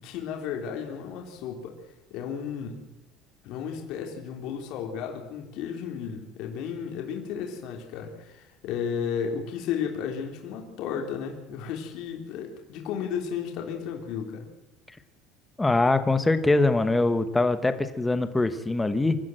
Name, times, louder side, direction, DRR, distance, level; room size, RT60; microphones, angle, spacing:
voice 1, 0.0-1.7 2.1-2.8 3.4-14.5, left 7 dB, 55° left, 2 dB, 3.4 m, -33 dB
voice 2, 15.6-19.2, left 2 dB, 10° left, 10 dB, 1.1 m, -23 dB
24.5 x 14.0 x 7.8 m, 0.97 s
cardioid pair, 175°, 0 cm